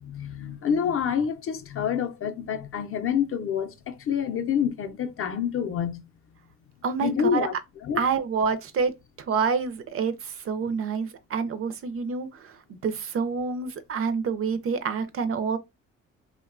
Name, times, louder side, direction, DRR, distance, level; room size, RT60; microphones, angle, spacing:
voice 1, 0.1-6.0 7.0-7.6 7.8-8.0, left 8 dB, 45° left, 0.5 m, -27 dB
voice 2, 6.8-7.5 8.0-8.9 9.3-12.6 12.8-15.6, right 5 dB, 50° right, 0.5 m, -27 dB
2.8 x 2.2 x 2.3 m
cardioid pair, 90°, 30 cm